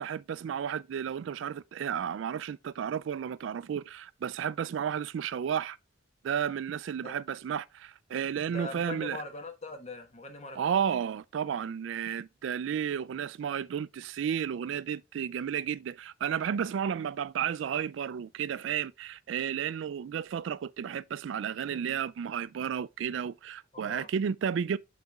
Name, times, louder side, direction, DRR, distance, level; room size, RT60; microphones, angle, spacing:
voice 1, 0.0-5.8 6.2-9.2 10.5-24.8, right 8 dB, 75° right, 0.3 m, -32 dB
voice 2, 8.5-10.8 23.7-24.1, left 2 dB, 35° left, 1.2 m, -41 dB
7.8 x 4.1 x 3.5 m
head